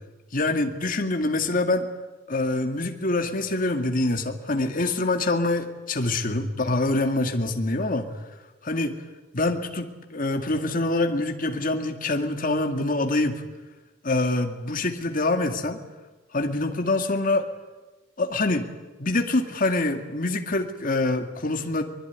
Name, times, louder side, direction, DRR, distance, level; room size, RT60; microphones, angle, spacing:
voice 1, 0.3-1.9 2.3-8.1 8.6-9.0 9.3-13.4 14.0-15.8 16.3-17.5 18.2-18.7 19.0-21.8, left 2 dB, 45° left, 5 dB, 2.2 m, -25 dB
24.0 x 21.0 x 9.5 m, 1.2 s
head